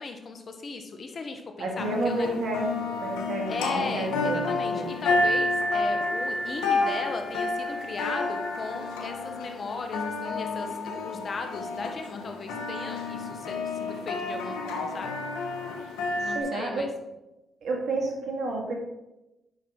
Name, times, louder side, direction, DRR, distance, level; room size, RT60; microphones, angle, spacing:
voice 1, 0.0-2.3 3.5-15.2 16.2-16.9, left 4 dB, 50° left, 5 dB, 1.2 m, -37 dB
voice 2, 1.6-4.9 16.2-16.9 17.6-18.7, right 2 dB, 70° right, 1 dB, 2.1 m, -31 dB
sound 1, 1.8-16.4, left 2 dB, 85° left, 1.1 m, -30 dB
9.2 x 6.0 x 3.8 m, 0.96 s
supercardioid pair, 50°, 0 cm